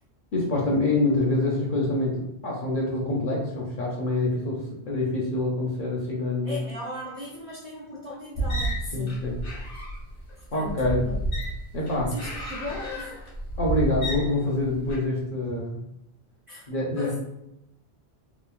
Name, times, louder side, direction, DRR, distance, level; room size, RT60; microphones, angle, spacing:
voice 1, 0.3-4.6 4.9-6.6 8.9-9.3 10.5-11.0 11.7-12.1 13.6-15.8 16.7-17.2, left 2 dB, 55° left, -2 dB, 0.7 m, -26 dB
voice 2, 6.4-9.2 10.4-11.2 12.1-13.3 16.5-16.7 17.0-17.2, left 1 dB, 40° right, -7 dB, 0.5 m, -38 dB
sound 1, 8.3-15.0, right 1 dB, 80° left, 1.2 m, -31 dB
3.0 x 2.0 x 2.3 m, 0.83 s
omnidirectional pair, 1.1 m